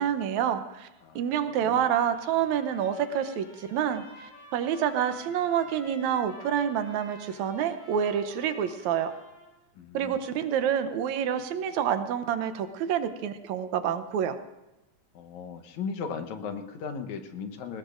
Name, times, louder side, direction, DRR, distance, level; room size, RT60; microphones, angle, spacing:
voice 1, 0.0-0.9 1.2-9.1 9.9-14.4, right 9 dB, 80° right, 10 dB, 2.1 m, -28 dB
voice 2, 1.0-1.9 9.8-10.2 15.1-17.8, left 5 dB, 80° left, 7 dB, 2.5 m, -37 dB
Trumpet, 1.9-9.5, left 3 dB, 60° left, 4.3 m, -51 dB
20.5 x 18.5 x 2.6 m, 0.97 s
omnidirectional pair, 3.3 m